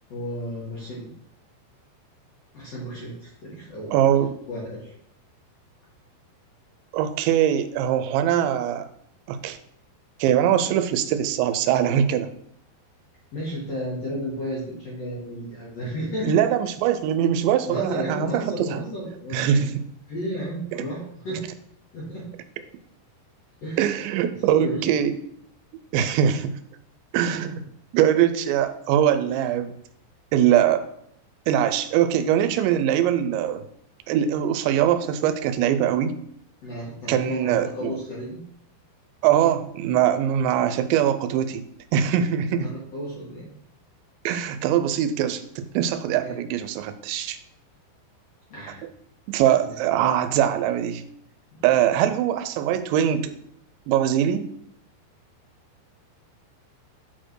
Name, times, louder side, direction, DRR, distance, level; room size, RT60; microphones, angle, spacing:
voice 1, 0.1-1.1 2.5-4.9 13.3-16.4 17.7-19.7 20.1-21.4 21.9-22.3 23.6-23.9 24.4-24.9 36.6-38.4 42.6-43.5 46.2-46.4 48.5-48.8 49.6-49.7, equal, 50° left, -6 dB, 2.1 m, -33 dB
voice 2, 3.9-4.3 6.9-8.9 9.3-9.6 10.2-12.3 16.2-18.3 18.7-18.8 19.3-19.8 23.8-25.1 25.9-26.6 27.1-27.6 27.9-29.7 30.3-30.8 31.5-33.6 34.1-36.1 37.1-37.9 39.2-41.6 41.9-42.7 44.3-47.4 48.8-48.9 49.3-51.0 51.6-53.3 53.9-54.5, right 10 dB, 85° right, 11 dB, 2.8 m, -22 dB
8.1 x 4.4 x 4.6 m, 0.70 s
omnidirectional pair, 5.1 m